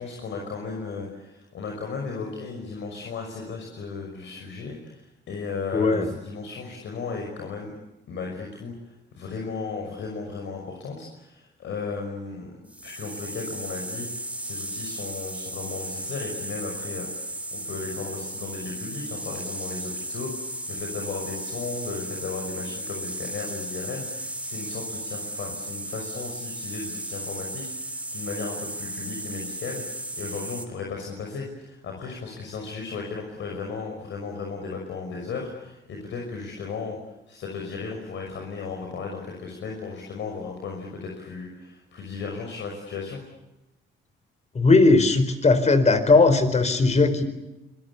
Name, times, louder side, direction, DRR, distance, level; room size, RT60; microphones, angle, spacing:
voice 1, 0.0-7.7 8.1-8.7 9.1-12.5 12.8-37.0 37.3-43.2, left 4 dB, 70° left, 1 dB, 6.0 m, -35 dB
voice 2, 5.7-6.1 44.5-47.2, left 3 dB, 35° left, 10 dB, 4.5 m, -18 dB
sound 1, 12.7-30.6, right 1 dB, 5° right, 4.0 m, -35 dB
26.5 x 22.5 x 8.5 m, 0.99 s
cardioid pair, 90°, 20 cm